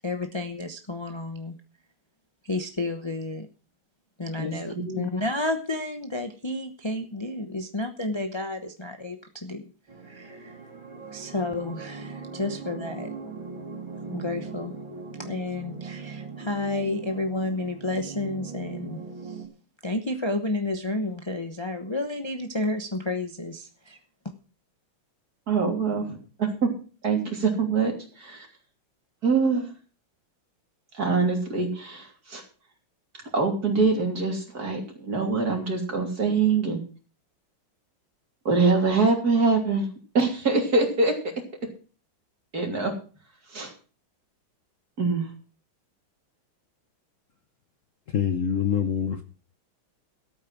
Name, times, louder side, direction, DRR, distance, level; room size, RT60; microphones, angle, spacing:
voice 1, 0.0-1.5 2.5-3.5 4.2-9.2 9.4-9.6 10.1-10.3 11.1-13.1 14.1-14.7 15.2-19.0 19.8-23.6, left 2 dB, 30° left, 0.5 m, -31 dB
voice 2, 4.4-5.1 25.5-26.7 27.0-28.5 29.2-29.7 30.9-32.4 33.3-36.8 38.5-39.9 40.1-41.1 42.5-42.9 43.5-43.7 45.0-45.3, right 4 dB, 45° right, 3.6 m, -24 dB
sound 1, 9.9-19.5, right 4 dB, 70° right, 3.6 m, -39 dB
voice 3, 48.1-49.2, left 8 dB, 50° left, 1.0 m, -25 dB
13.5 x 8.8 x 6.0 m
omnidirectional pair, 2.2 m